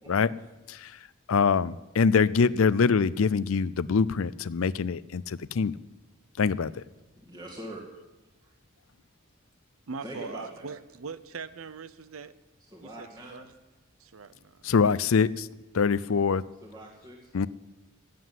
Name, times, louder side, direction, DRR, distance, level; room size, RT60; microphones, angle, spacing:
voice 1, 1.3-5.7 6.4-6.8 14.6-15.5 15.7-16.4 17.3-17.5, left 5 dB, 75° left, 0.5 m, -24 dB
voice 2, 7.2-7.8 10.0-10.7 12.7-13.5 16.6-17.2, right 1 dB, 20° right, 2.2 m, -42 dB
voice 3, 9.9-12.3 12.8-13.4 14.0-14.6, right 5 dB, 85° right, 0.7 m, -41 dB
17.0 x 7.7 x 9.3 m
head